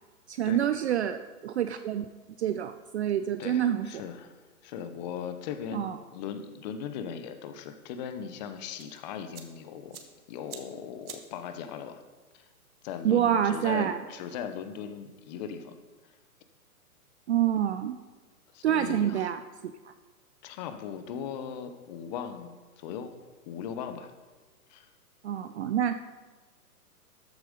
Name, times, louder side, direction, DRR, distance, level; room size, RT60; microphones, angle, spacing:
voice 1, 0.3-2.1 2.4-4.0 5.7-6.0 13.0-14.0 17.3-18.0 18.6-19.9 25.2-25.9, right 10 dB, 45° right, 10 dB, 0.5 m, -27 dB
voice 2, 3.4-4.3 4.6-10.0 10.3-12.0 12.3-12.4 12.8-15.7 18.5-19.3 20.4-23.1 23.5-24.1 24.7-24.9, left 8 dB, 30° left, 9 dB, 0.8 m, -38 dB
sound 1, 8.7-15.2, right 7 dB, 70° right, 1.7 m, -53 dB
13.5 x 7.8 x 5.1 m, 1.3 s
hypercardioid pair, 135°, 46 cm